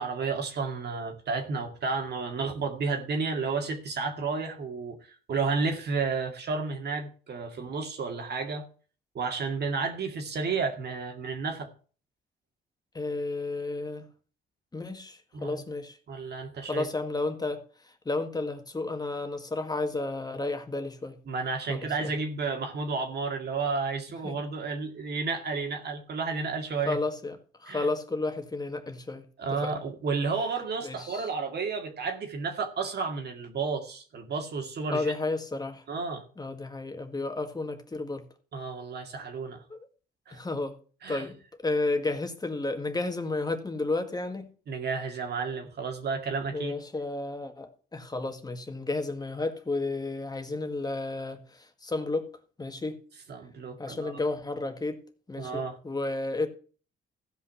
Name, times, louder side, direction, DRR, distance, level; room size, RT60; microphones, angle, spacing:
voice 1, 0.0-8.7 9.1-11.7 15.3-15.6 16.1-16.9 21.3-27.0 27.7-27.9 29.4-35.1 35.9-36.2 38.5-39.6 40.3-40.4 41.0-41.3 44.7-46.8 53.3-54.1 55.4-55.8, right 4 dB, 55° right, 2.2 m, -32 dB
voice 2, 12.9-14.0 14.7-16.0 16.7-17.6 18.1-21.2 21.7-22.1 24.2-24.4 26.9-29.2 29.5-29.7 30.8-31.3 34.9-35.8 36.4-38.3 39.7-39.9 40.3-40.8 41.1-41.4 41.6-44.5 46.5-52.3 52.6-53.0 53.8-55.0 55.3-56.5, left 2 dB, 20° left, 1.8 m, -32 dB
15.0 x 5.5 x 5.7 m
cardioid pair, 90°, 20 cm